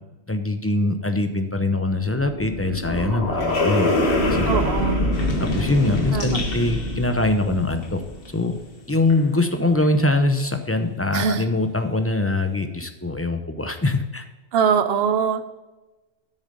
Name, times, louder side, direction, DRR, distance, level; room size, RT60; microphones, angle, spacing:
voice 1, 0.3-4.5 5.4-8.0 8.3-8.5 8.9-14.2, left 2 dB, 15° left, 7 dB, 0.6 m, -23 dB
sound 1, 2.0-8.3, left 1 dB, 80° left, 1.8 m, -25 dB
voice 2, 4.5-5.0 6.1-6.4 11.1-11.5 14.5-15.5, right 7 dB, 70° right, 11 dB, 1.0 m, -22 dB
sound 2, 5.1-10.5 10.8-12.5, left 3 dB, 60° left, 1.4 m, -37 dB
8.3 x 6.6 x 5.2 m, 1.1 s
omnidirectional pair, 1.1 m